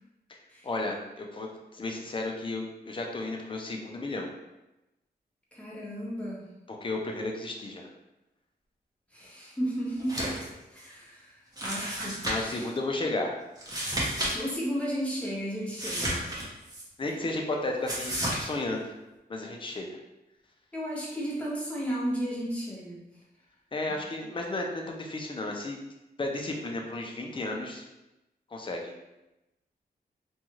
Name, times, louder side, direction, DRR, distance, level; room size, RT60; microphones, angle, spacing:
voice 1, 0.6-4.3 6.7-7.9 12.2-13.3 17.0-18.9 19.3-20.0 23.7-25.8 26.2-27.8 28.5-28.9, left 2 dB, 30° left, 1 dB, 0.5 m, -33 dB
voice 2, 5.5-6.5 9.1-10.4 10.7-12.7 14.3-16.2 20.7-23.1, equal, 5° left, -6 dB, 0.9 m, -34 dB
sound 1, 10.0-10.5 10.8-10.9 11.6-12.6 13.6-14.3 14.6-14.7 15.7-16.8 17.9-18.5, right 1 dB, 20° right, 0.8 m, -32 dB
2.6 x 2.3 x 3.0 m, 0.97 s
wide cardioid pair, 100°, 17 cm